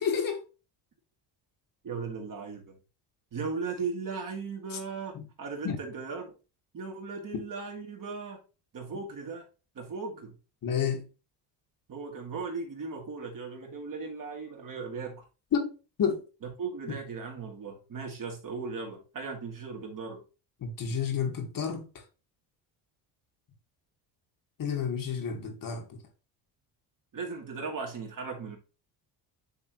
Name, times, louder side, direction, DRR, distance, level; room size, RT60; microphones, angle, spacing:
voice 1, 0.0-0.4 5.2-5.3 5.6-5.8 10.6-11.0 15.5-15.7 16.0-16.2 20.6-21.9 24.6-25.8, left 7 dB, 45° left, 1.9 m, -29 dB
voice 2, 1.8-2.8 3.3-6.3 6.7-8.4 8.7-9.4 9.7-10.3 11.9-15.2 16.6-20.2 27.1-28.6, right 4 dB, 45° right, 2.6 m, -37 dB
9.6 x 3.6 x 3.1 m
supercardioid pair, 80°, 47 cm